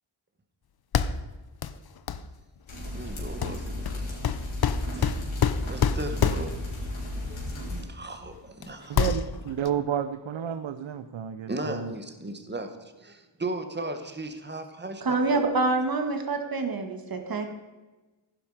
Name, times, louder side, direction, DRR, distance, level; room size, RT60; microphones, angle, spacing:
sound 1, 0.9-1.3 1.6-1.8 2.1-2.3 3.4-6.7 7.8-7.9 8.3-8.7 8.9-9.7, left 7 dB, 55° left, 0.7 m, -27 dB
sound 2, 2.7-7.8, left 1 dB, 85° left, 4.9 m, -34 dB
voice 1, 2.9-4.0 4.9-5.2 5.7-6.9 7.3-9.3 11.5-15.5, right 2 dB, 25° right, 7 dB, 1.5 m, -37 dB
voice 2, 8.9-11.9, right 9 dB, 75° right, 11 dB, 0.8 m, -31 dB
voice 3, 15.0-17.5, right 3 dB, 50° right, 5 dB, 2.0 m, -26 dB
15.0 x 11.5 x 5.0 m, 1.2 s
wide cardioid pair, 140°, 46 cm